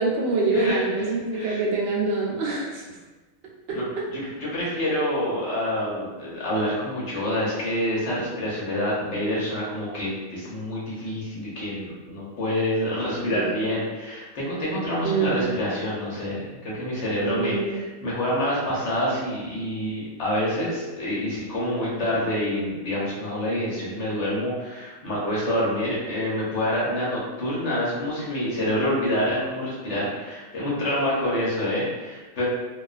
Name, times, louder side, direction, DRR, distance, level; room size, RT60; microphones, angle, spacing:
voice 1, 0.0-2.9 3.7-3.8 13.3-13.5 14.9-15.6 17.2-17.8, right 3 dB, 65° right, -4 dB, 0.7 m, -25 dB
voice 2, 0.5-0.9 1.3-1.6 3.7-3.8 4.1-32.4, left 1 dB, 60° left, -6 dB, 1.0 m, -27 dB
2.4 x 2.2 x 2.4 m, 1.2 s
omnidirectional pair, 1.4 m